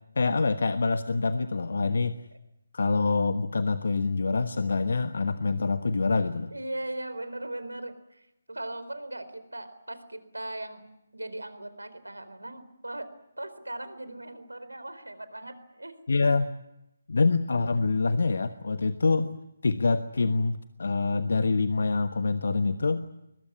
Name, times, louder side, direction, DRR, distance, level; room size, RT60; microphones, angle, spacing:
voice 1, 0.1-2.1 2.7-6.5 16.1-16.5 17.1-23.0, left 4 dB, 60° left, 10 dB, 1.3 m, -26 dB
voice 2, 6.5-10.9 11.1-13.1 13.4-16.0, right 1 dB, 85° right, 12 dB, 4.1 m, -38 dB
22.0 x 21.5 x 9.8 m, 0.86 s
figure-of-eight pair, 150°, 0 cm